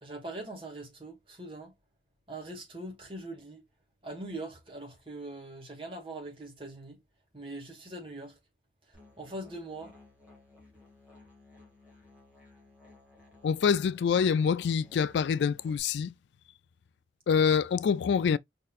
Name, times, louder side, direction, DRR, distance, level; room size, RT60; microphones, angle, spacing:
voice 1, 0.0-1.7 2.3-3.6 4.0-7.0 7.3-8.4 9.2-9.9, right 2 dB, 30° right, 2.0 m, -42 dB
Musical instrument, 8.9-15.8, left 2 dB, 10° right, 2.0 m, -57 dB
voice 2, 13.4-16.1 17.3-18.4, left 6 dB, 80° left, 0.3 m, -26 dB
5.2 x 4.2 x 2.4 m
head